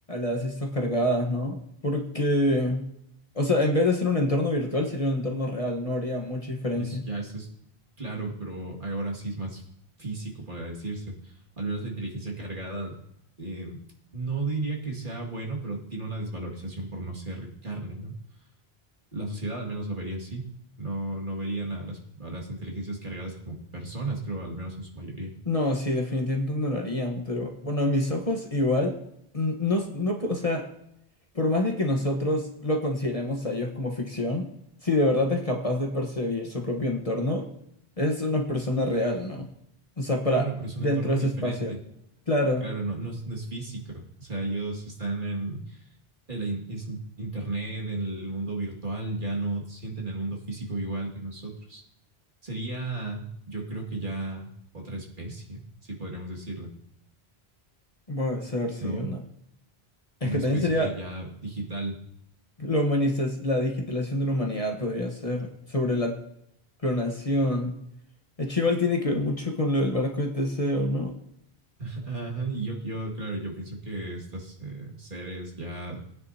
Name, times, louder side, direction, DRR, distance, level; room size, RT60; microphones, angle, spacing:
voice 1, 0.1-2.8 3.3-7.0 25.5-29.0 29.3-30.6 31.3-34.5 34.8-37.5 38.0-39.5 40.0-40.5 40.8-41.7 42.3-42.6 58.1-59.2 60.2-60.9 62.6-66.2 66.8-67.8 68.4-71.1, left 1 dB, 35° left, 1 dB, 1.3 m, -26 dB
voice 2, 6.7-7.5 8.0-9.6 10.0-13.0 13.4-13.8 14.1-18.2 19.1-20.5 20.8-25.3 40.3-41.8 42.6-45.8 46.3-51.8 52.4-54.5 54.7-55.6 55.9-56.7 58.8-59.1 60.2-62.0 71.8-76.0, right 2 dB, 50° right, -2 dB, 2.3 m, -34 dB
20.0 x 9.5 x 2.8 m, 0.78 s
omnidirectional pair, 1.1 m